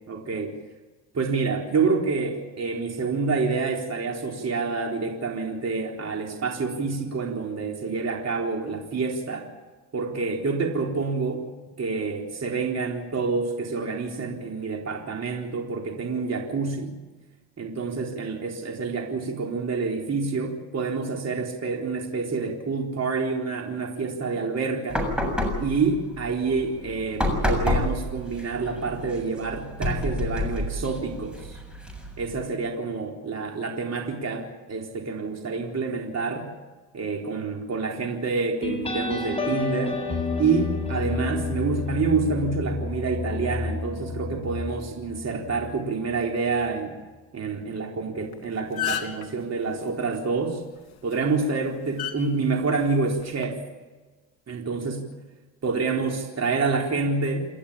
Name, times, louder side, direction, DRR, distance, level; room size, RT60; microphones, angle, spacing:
voice 1, 0.1-0.5 1.1-9.5 9.9-11.5 11.8-17.0 17.6-25.0 25.6-31.6 32.2-36.5 36.9-40.0 40.4-47.0 47.3-50.6 51.0-53.6 54.5-55.0 55.6-57.5, right 4 dB, 35° right, 1 dB, 4.2 m, -27 dB
sound 1, 24.9-32.4, left 1 dB, ahead, 7.3 m, -29 dB
sound 2, 38.6-45.8, left 4 dB, 15° left, 8.0 m, -30 dB
sound 3, 48.2-48.3 48.6-49.3 50.9-51.1 52.0-52.2 53.2-53.4, left 10 dB, 60° left, 3.5 m, -29 dB
28.5 x 13.5 x 8.8 m, 1.2 s
cardioid pair, 100°, 43 cm